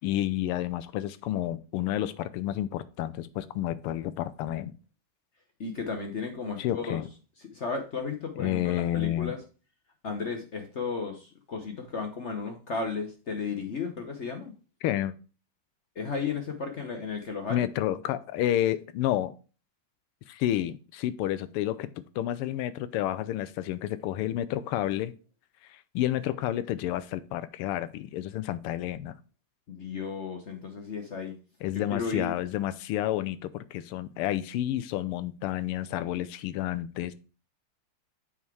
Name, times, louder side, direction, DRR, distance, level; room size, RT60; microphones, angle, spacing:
voice 1, 0.0-4.7 6.6-7.1 8.4-9.3 14.8-15.1 17.5-19.3 20.3-21.9 22.1-25.1 25.7-29.1 31.6-37.1, left 13 dB, 90° left, 14 dB, 1.5 m, -30 dB
voice 2, 5.6-7.0 7.4-9.4 10.0-14.5 16.0-17.7 29.7-31.3 31.7-32.4, left 5 dB, 65° left, 4 dB, 0.7 m, -34 dB
8.3 x 3.7 x 4.6 m, 0.34 s
omnidirectional pair, 2.4 m